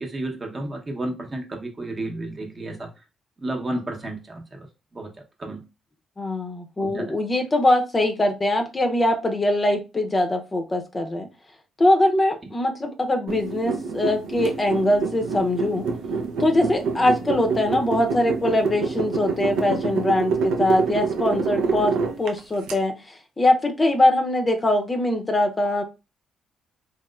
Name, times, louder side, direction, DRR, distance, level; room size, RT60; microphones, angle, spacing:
voice 1, 0.0-2.9 3.4-4.7 4.9-5.6 6.8-7.1, right 1 dB, 30° right, 0.8 m, -32 dB
voice 2, 6.2-11.3 11.8-15.9 16.4-25.8, left 1 dB, 25° left, 0.6 m, -22 dB
sound 1, 13.3-22.7, right 4 dB, 85° right, 0.5 m, -27 dB
3.0 x 2.9 x 2.3 m
cardioid pair, 90°, 0 cm